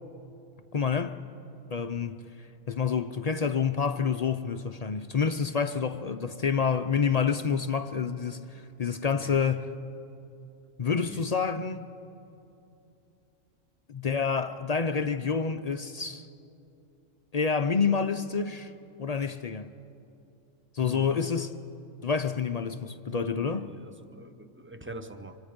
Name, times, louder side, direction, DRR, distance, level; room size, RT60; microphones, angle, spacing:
voice 1, 0.7-1.2 1.7-9.7 10.8-11.9 13.9-16.3 17.3-18.7 19.0-19.7 20.7-21.6 22.0-23.7, left 6 dB, 50° left, 0.4 m, -28 dB
voice 2, 20.8-21.3 23.5-25.4, right 2 dB, 10° right, 0.6 m, -44 dB
27.0 x 25.5 x 5.2 m
omnidirectional pair, 1.4 m